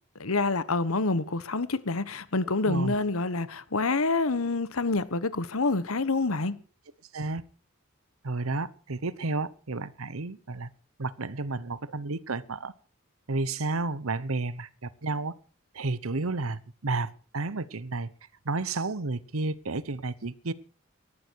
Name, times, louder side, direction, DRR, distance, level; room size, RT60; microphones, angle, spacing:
voice 1, 0.2-6.5, left 3 dB, 85° left, 1.3 m, -27 dB
voice 2, 2.6-2.9 7.1-7.4 8.2-10.7 11.0-12.7 13.3-15.3 15.7-18.1 18.4-20.5, right 3 dB, 85° right, 1.0 m, -31 dB
18.5 x 14.0 x 4.7 m
head